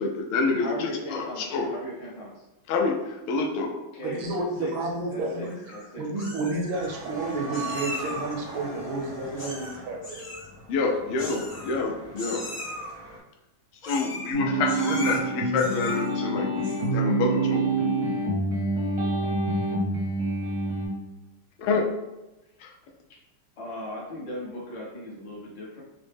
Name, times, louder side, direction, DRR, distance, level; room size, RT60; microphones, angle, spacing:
voice 1, 0.0-1.7 2.7-3.7 10.7-12.4 13.8-17.6 21.6-21.9 22.6-22.7, left 4 dB, 85° left, 1 dB, 1.5 m, -27 dB
voice 2, 0.6-2.4 3.9-4.7 5.1-6.0 23.1-23.2 23.6-25.8, equal, 65° left, -4 dB, 1.4 m, -37 dB
voice 3, 4.0-5.6 6.0-10.3, right 2 dB, 75° right, 0 dB, 1.3 m, -30 dB
Meow, 5.4-5.8 6.2-6.9 7.5-8.3 9.4-9.8 10.0-10.5 11.2-11.9 12.2-12.9 13.8-14.3 14.6-15.2 15.5-16.1 16.6-17.0, left 1 dB, 35° left, 0.8 m, -38 dB
sound 1, 6.7-13.2, right 2 dB, 10° right, 0.6 m, -41 dB
sound 2, 14.3-20.9, right 2 dB, 50° right, 0.7 m, -26 dB
4.2 x 2.1 x 3.3 m, 0.99 s
omnidirectional pair, 2.4 m